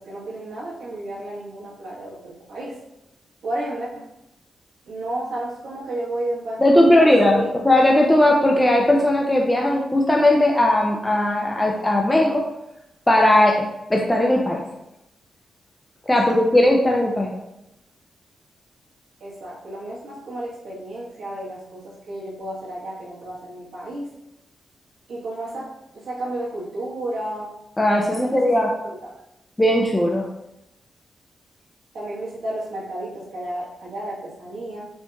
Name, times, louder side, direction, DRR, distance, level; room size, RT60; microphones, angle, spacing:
voice 1, 0.0-2.8 3.4-4.1 4.9-7.5 16.3-16.4 19.2-24.1 25.1-27.5 28.1-28.5 29.0-29.1 31.9-34.8, right 1 dB, 85° right, -6 dB, 1.1 m, -32 dB
voice 2, 6.6-12.4 13.1-13.5 13.9-14.6 16.1-17.3 27.8-28.7 29.6-30.2, left 1 dB, 10° left, 0 dB, 0.3 m, -18 dB
4.4 x 2.8 x 2.2 m, 0.88 s
wide cardioid pair, 150°, 0 cm